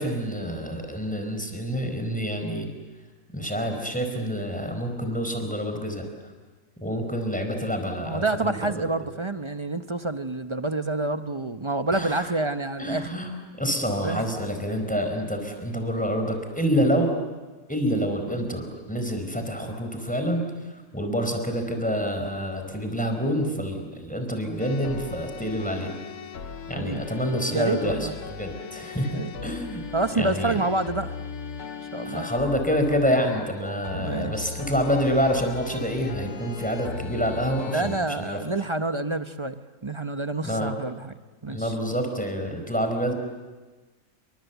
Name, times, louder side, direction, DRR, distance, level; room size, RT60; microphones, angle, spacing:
voice 1, 0.0-2.7 3.3-6.1 6.8-8.6 11.9-12.2 12.8-13.3 13.6-17.1 17.7-20.4 20.9-25.9 26.7-29.2 29.4-29.8 30.2-30.6 32.0-38.4 40.4-40.7 41.5-43.1, equal, 5° left, 4 dB, 4.6 m, -27 dB
voice 2, 8.0-13.1 14.0-14.3 18.3-18.5 26.7-27.1 27.5-28.1 29.1-29.3 29.9-31.1 31.9-32.3 33.9-34.6 37.7-41.1 41.4-41.8, right 2 dB, 25° right, 10 dB, 0.7 m, -28 dB
sound 1, 24.6-38.0, left 5 dB, 90° left, 1.8 m, -38 dB
28.5 x 25.0 x 8.2 m, 1.3 s
omnidirectional pair, 1.6 m